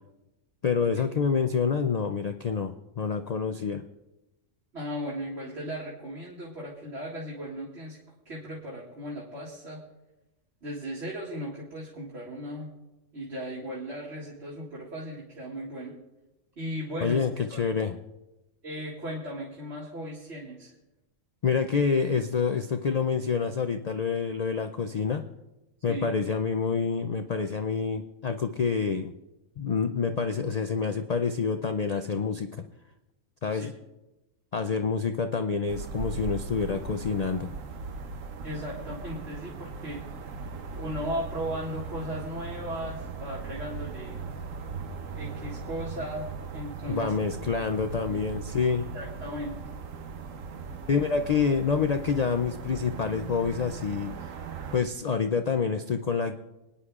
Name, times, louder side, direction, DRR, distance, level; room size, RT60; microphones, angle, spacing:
voice 1, 0.6-3.8 17.0-18.0 21.4-25.2 25.8-29.1 29.6-32.6 33.4-33.7 34.5-37.5 46.9-48.9 50.9-54.1 54.7-56.3, left 5 dB, 75° left, 7 dB, 0.3 m, -27 dB
voice 2, 4.7-8.0 8.3-9.8 10.6-12.7 13.1-15.9 16.6-17.2 17.5-17.6 18.6-20.7 25.9-26.1 33.5-33.7 38.4-40.0 40.7-44.2 45.1-46.3 46.5-47.1 48.9-49.6, equal, 55° right, -5 dB, 2.2 m, -36 dB
sound 1, 35.7-54.8, right 4 dB, 75° right, 1.2 m, -39 dB
27.5 x 9.9 x 2.4 m, 1.0 s
omnidirectional pair, 1.4 m